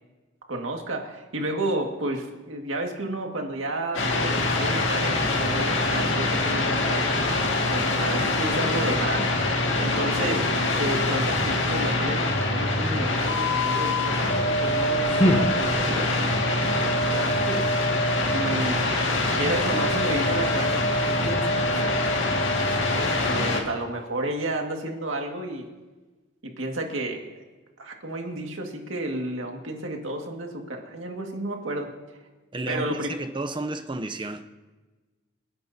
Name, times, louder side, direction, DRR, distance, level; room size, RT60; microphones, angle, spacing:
voice 1, 0.5-7.0 7.7-9.3 9.6-10.4 10.7-17.6 18.3-18.9 19.2-21.9 22.6-25.7 26.4-27.3 27.8-31.9 32.7-33.2, right 1 dB, 75° right, 2.0 m, -31 dB
sound 1, 3.9-23.6, left 2 dB, 70° left, 2.0 m, -24 dB
sound 2, 14.6-16.2, equal, 30° left, 1.0 m, -26 dB
voice 2, 32.5-34.5, right 2 dB, 25° right, 0.6 m, -32 dB
28.5 x 10.0 x 2.8 m
head